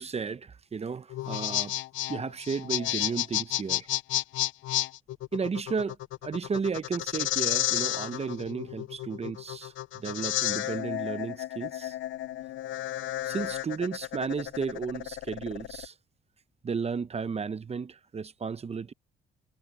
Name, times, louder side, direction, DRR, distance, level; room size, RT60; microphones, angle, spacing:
voice 1, 0.0-1.7 2.1-3.9 5.3-6.0 6.2-12.0 13.2-15.9 16.6-18.9, right 5 dB, 30° right, 0.8 m, -33 dB
sound 1, 1.1-15.9, left 15 dB, 75° left, 0.5 m, -32 dB
cardioid pair, 90°, 20 cm